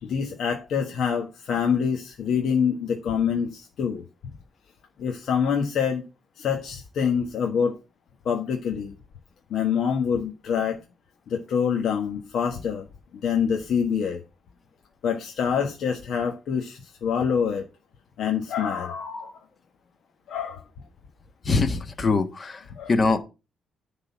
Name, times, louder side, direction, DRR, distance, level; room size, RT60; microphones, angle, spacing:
voice 1, 0.0-4.0 5.0-6.0 6.4-7.8 8.2-8.9 9.5-10.8 11.3-12.8 13.2-14.2 15.0-17.6 18.2-19.4 20.3-20.6 22.8-22.9, left 7 dB, 70° left, 1.4 m, -26 dB
voice 2, 21.4-23.2, left 3 dB, 35° left, 1.5 m, -23 dB
10.0 x 3.9 x 7.1 m
cardioid pair, 90°, 0 cm